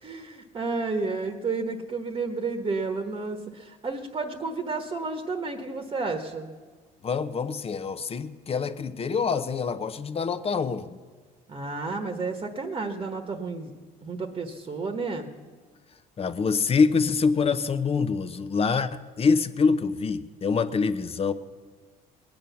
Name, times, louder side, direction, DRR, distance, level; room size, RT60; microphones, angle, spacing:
voice 1, 0.0-6.5 11.5-13.7 14.0-15.3, right 3 dB, 30° right, 6 dB, 1.2 m, -31 dB
voice 2, 7.0-11.0 16.2-21.3, left 5 dB, 35° left, 11 dB, 0.8 m, -25 dB
19.5 x 9.2 x 7.0 m, 1.5 s
cardioid pair, 110°, 17 cm